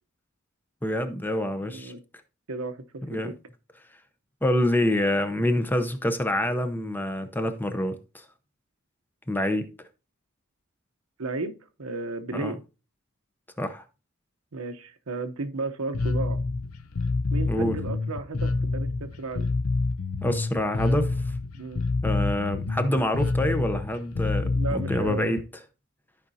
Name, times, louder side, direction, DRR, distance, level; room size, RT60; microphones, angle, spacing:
voice 1, 0.8-1.9 3.1-3.3 4.4-8.2 9.3-9.7 12.3-12.5 13.6-13.8 17.5-17.8 20.2-21.2 22.0-25.4, left 1 dB, 10° left, 0.7 m, -26 dB
voice 2, 1.6-2.0 2.5-3.3 11.2-11.5 11.8-12.6 14.5-16.4 17.3-19.5 21.5-21.8 24.4-25.4, right 3 dB, 80° right, 0.9 m, -34 dB
Bass guitar, 15.9-25.4, left 3 dB, 90° left, 0.7 m, -27 dB
13.5 x 5.1 x 2.7 m
head